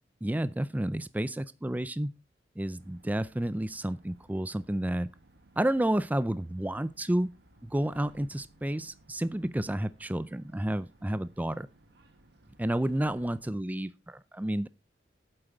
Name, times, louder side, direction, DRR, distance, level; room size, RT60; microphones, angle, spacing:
voice 1, 0.2-2.1 2.6-5.1 5.6-7.3 7.6-11.7 12.6-14.7, right 1 dB, 10° right, 0.4 m, -30 dB
sound 1, 2.8-13.6, right 1 dB, 65° right, 1.7 m, -60 dB
8.8 x 7.8 x 5.1 m
head